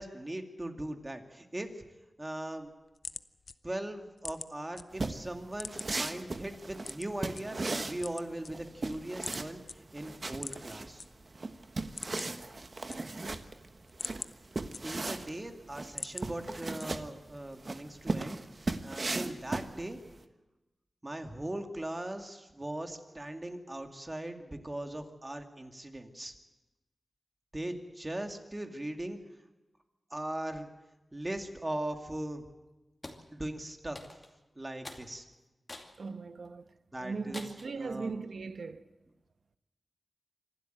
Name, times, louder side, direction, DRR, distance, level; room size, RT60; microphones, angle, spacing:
voice 1, 0.0-1.7 2.2-2.7 3.6-9.6 9.9-11.0 14.8-18.4 18.8-20.0 21.0-26.3 27.5-29.2 30.1-30.7 31.1-32.4 33.3-34.0 34.6-35.3 36.9-37.4 37.8-38.2, right 1 dB, 25° right, 2.3 m, -39 dB
sound 1, 2.6-4.8 5.2-6.1 6.8-7.4 7.9-8.9 9.2-9.4 9.7-9.8 10.3-11.1 11.4-11.5 11.8-12.4 12.7-13.4 13.8-15.2 15.6-16.3 16.8-17.2, left 4 dB, 60° left, 0.7 m, -43 dB
sound 2, 4.9-20.2, right 3 dB, 45° right, 1.3 m, -37 dB
sound 3, 33.0-33.2 34.0-34.4 34.8-35.1 35.7-36.0 36.5-36.6 37.3-37.7, left 2 dB, 30° left, 2.6 m, -45 dB
voice 2, 36.0-36.7 37.0-38.9, right 4 dB, 75° right, 1.0 m, -38 dB
26.0 x 12.5 x 9.1 m
wide cardioid pair, 75°, 0 cm